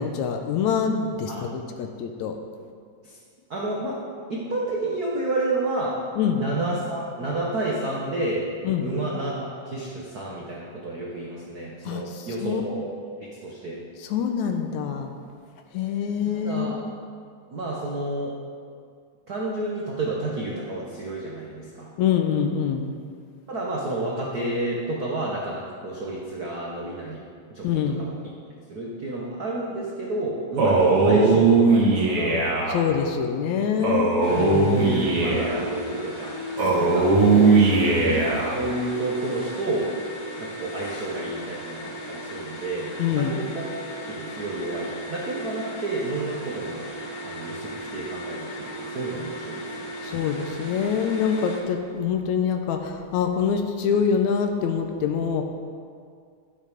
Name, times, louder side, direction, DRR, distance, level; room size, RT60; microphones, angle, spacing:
voice 1, 0.0-2.4 6.2-6.4 8.6-8.8 11.9-12.0 12.4-12.6 14.1-15.1 15.7-16.7 22.0-22.9 27.6-28.0 32.7-34.8 43.0-43.4 50.0-55.4, left 7 dB, 75° left, 5 dB, 2.0 m, -25 dB
voice 2, 3.5-4.0 4.3-6.0 6.3-8.5 8.8-12.9 13.4-13.8 16.2-16.8 17.5-18.3 19.3-21.9 23.5-27.2 27.5-28.2 28.7-32.4 34.3-36.3 36.8-39.9 40.4-43.8 44.1-46.8 47.2-49.9, right 2 dB, 70° right, -4 dB, 0.8 m, -30 dB
Male speech man speaking, 30.6-32.8 33.8-35.6 36.6-38.6, right 3 dB, 55° right, 2.1 m, -19 dB
sound 1, 34.2-51.6, equal, 55° left, 2.6 m, -36 dB
12.5 x 7.6 x 5.1 m, 2.2 s
omnidirectional pair, 3.5 m